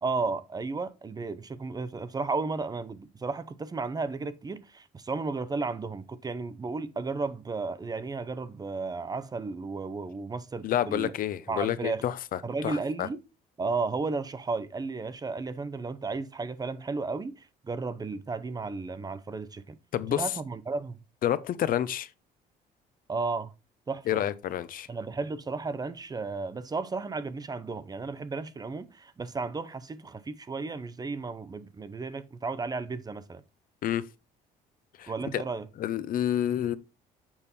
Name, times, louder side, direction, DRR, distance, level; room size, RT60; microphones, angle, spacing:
voice 1, 0.0-11.1 11.5-12.0 12.4-13.2 13.6-19.8 20.1-21.0 23.1-23.5 23.9-24.2 24.9-33.4 35.1-35.7, right 4 dB, 20° right, 0.7 m, -33 dB
voice 2, 10.6-13.1 19.9-20.2 21.2-22.1 24.1-24.9 33.8-34.0 35.0-35.4 35.8-36.8, left 11 dB, 55° left, 0.6 m, -29 dB
7.2 x 5.2 x 4.2 m
cardioid pair, 110°, 17 cm